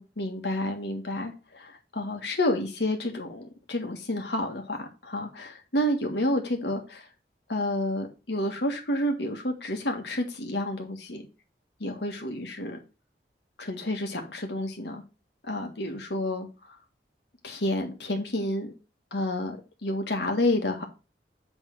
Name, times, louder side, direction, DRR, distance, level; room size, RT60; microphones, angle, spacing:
voice 1, 0.0-7.1 7.5-11.2 11.8-12.8 13.6-15.0 15.4-16.5 17.4-18.8 19.1-20.8, left 1 dB, 70° left, 1.6 m, -30 dB
8.2 x 3.6 x 4.7 m
head